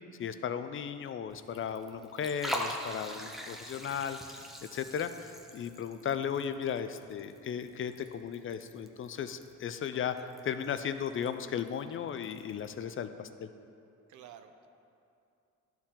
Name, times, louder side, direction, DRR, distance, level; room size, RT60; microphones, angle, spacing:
voice 1, 0.2-4.4 4.7-10.1 10.5-13.3, left 8 dB, 45° left, 10 dB, 0.4 m, -36 dB
Liquid, 1.3-12.7, equal, ahead, 0.7 m, -44 dB
voice 2, 9.9-10.3 14.1-14.7, right 9 dB, 70° right, 7 dB, 0.6 m, -52 dB
11.5 x 4.5 x 3.7 m, 2.6 s
cardioid pair, 90°, 30 cm